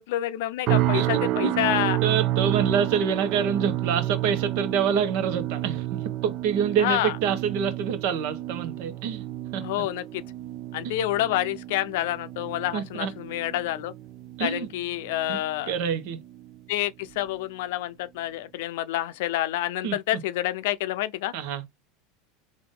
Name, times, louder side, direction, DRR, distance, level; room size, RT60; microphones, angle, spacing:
voice 1, 0.0-2.0 6.8-7.1 9.6-10.2 10.7-13.9 14.4-15.7 16.7-21.3, left 14 dB, 75° left, 0.5 m, -28 dB
sound 1, 0.7-15.9 16.2-16.6 17.1-17.3, right 14 dB, 50° right, 0.4 m, -30 dB
voice 2, 2.0-9.2 9.5-9.7 10.8-11.0 12.7-13.1 14.4-14.7 15.3-15.4 15.7-16.2 19.8-20.0 21.3-21.6, right 7 dB, 65° right, 1.0 m, -26 dB
3.8 x 2.6 x 3.6 m
supercardioid pair, 120°, 0 cm